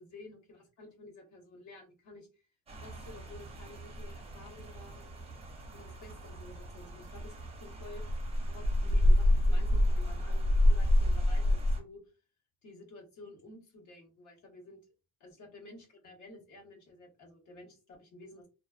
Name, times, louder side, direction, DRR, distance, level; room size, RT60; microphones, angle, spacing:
voice 1, 0.0-2.3 2.8-5.1 5.7-8.0 8.5-12.0 12.6-14.8 15.2-18.5, left 2 dB, 55° left, 0 dB, 1.1 m, -52 dB
Rain, 2.7-11.8, left 1 dB, 15° right, 0.7 m, -29 dB
2.4 x 2.3 x 2.2 m, 0.32 s
cardioid pair, 125°, 36 cm